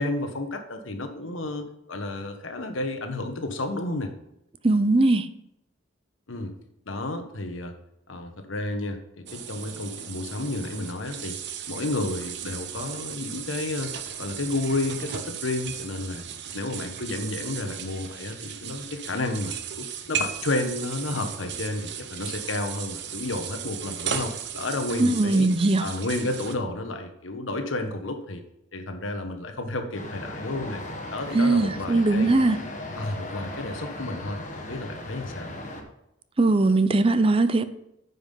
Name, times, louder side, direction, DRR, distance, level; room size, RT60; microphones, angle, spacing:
voice 1, 0.0-4.1 6.3-6.5 6.9-7.7 8.1-11.4 11.7-13.9 14.2-16.2 16.5-25.5 25.8-28.4 28.7-30.8 31.1-32.3 33.0-35.5, left 2 dB, 90° left, 6 dB, 1.2 m, -31 dB
voice 2, 4.6-5.3 25.0-25.9 31.3-32.6 36.4-37.6, right 2 dB, 30° right, 12 dB, 0.5 m, -20 dB
sound 1, 9.3-26.6, right 8 dB, 60° right, 0.8 m, -36 dB
sound 2, 29.9-35.8, left 1 dB, 40° left, 1.3 m, -37 dB
9.5 x 5.6 x 5.5 m, 0.83 s
head